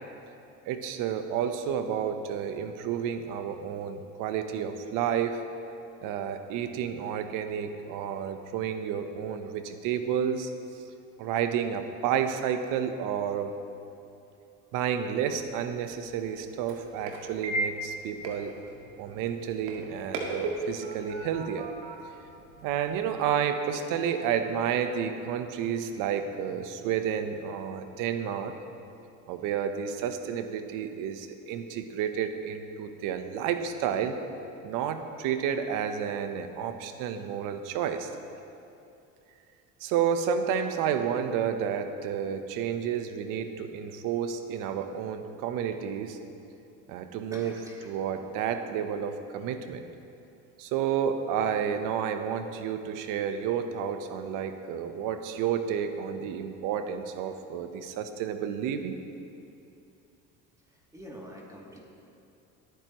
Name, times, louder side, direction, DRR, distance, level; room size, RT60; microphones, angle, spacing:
voice 1, 0.7-5.4 6.0-10.5 11.2-13.5 14.7-18.5 19.0-21.7 22.6-28.5 29.3-34.2 34.6-38.1 39.8-46.2 46.9-47.5 47.8-49.8 50.6-59.0, right 8 dB, 70° right, 8 dB, 1.1 m, -30 dB
sound 1, 15.4-23.1, right 2 dB, 90° right, 2.0 m, -38 dB
voice 2, 47.3-47.9 60.9-61.8, equal, 10° right, -4 dB, 2.8 m, -45 dB
21.5 x 9.6 x 3.1 m, 2.7 s
supercardioid pair, 90°, 33 cm